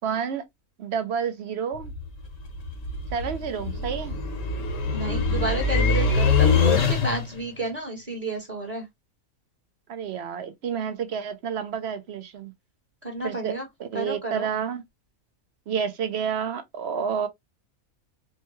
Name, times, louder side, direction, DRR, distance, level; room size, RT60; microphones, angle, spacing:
voice 1, 0.0-0.4 0.8-1.9 3.1-4.2 9.9-12.5 13.2-13.5 13.8-14.8 15.7-17.3, right 7 dB, 60° right, 0.8 m, -29 dB
sound 1, 1.7-7.4, left 4 dB, 65° left, 1.3 m, -24 dB
voice 2, 4.9-8.9 13.0-13.7 13.9-14.5, right 2 dB, 30° right, 1.2 m, -31 dB
4.5 x 2.2 x 2.9 m
omnidirectional pair, 1.5 m